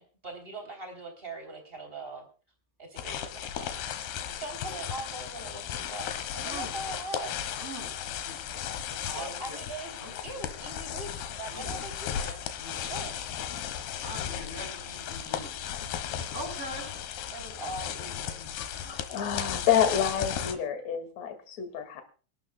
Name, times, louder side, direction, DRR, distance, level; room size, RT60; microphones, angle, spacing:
voice 1, 0.0-2.3 2.8-3.9 4.3-7.4 9.1-13.3 17.3-18.4, right 2 dB, 15° right, 4 dB, 2.6 m, -41 dB
sound 1, 3.0-20.5, left 9 dB, 70° left, 2.9 m, -36 dB
voice 2, 6.4-6.7 7.6-7.9 8.2-8.4 8.9-9.6 10.0-10.4 11.5-11.7 12.6-12.8 14.0-15.6 16.2-16.9 18.3-18.5 18.8-19.2, right 1 dB, 15° left, 2 dB, 4.0 m, -42 dB
voice 3, 18.6-22.0, left 9 dB, 45° left, 7 dB, 2.6 m, -28 dB
27.0 x 12.0 x 2.3 m, 0.38 s
omnidirectional pair, 5.4 m